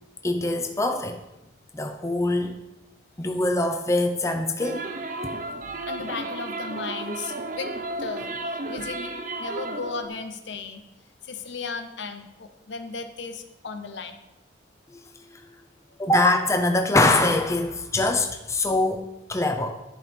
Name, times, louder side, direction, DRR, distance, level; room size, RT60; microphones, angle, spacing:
voice 1, 0.2-1.2 1.7-2.6 3.2-4.9 16.0-19.8, left 2 dB, 15° left, 5 dB, 0.6 m, -23 dB
sound 1, 4.6-10.1, right 2 dB, 45° right, 0.7 m, -33 dB
voice 2, 5.8-7.7 8.0-10.8 11.2-14.2 15.9-16.0, left 4 dB, 70° left, 8 dB, 0.8 m, -35 dB
11.0 x 5.3 x 4.4 m, 0.94 s
head